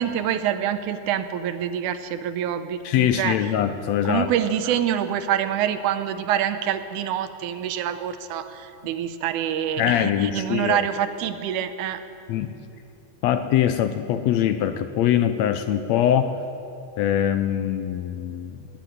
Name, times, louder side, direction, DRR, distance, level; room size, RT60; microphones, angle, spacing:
voice 1, 0.0-3.4 4.1-12.0, right 10 dB, 85° right, 10 dB, 2.2 m, -26 dB
voice 2, 2.8-4.3 9.8-10.8 12.3-12.6 13.2-16.4 17.0-18.7, left 10 dB, 75° left, 10 dB, 1.7 m, -23 dB
19.5 x 7.4 x 9.7 m, 2.9 s
omnidirectional pair, 3.4 m